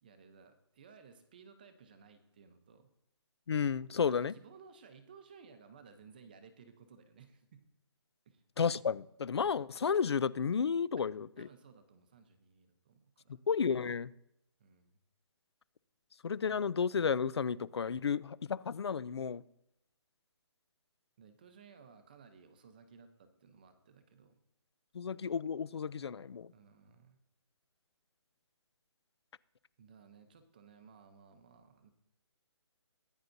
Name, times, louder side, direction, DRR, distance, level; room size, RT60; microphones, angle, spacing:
voice 1, 0.0-2.9 4.0-7.6 8.3-8.4 11.2-13.4 14.6-15.0 21.2-24.4 26.5-27.2 29.8-31.9, right 6 dB, 20° right, 9 dB, 0.7 m, -58 dB
voice 2, 3.5-4.3 8.6-11.5 13.5-14.1 16.2-19.4 24.9-26.5, left 6 dB, 60° left, 20 dB, 0.5 m, -32 dB
18.5 x 9.8 x 2.6 m, 0.82 s
hypercardioid pair, 175°, 15 cm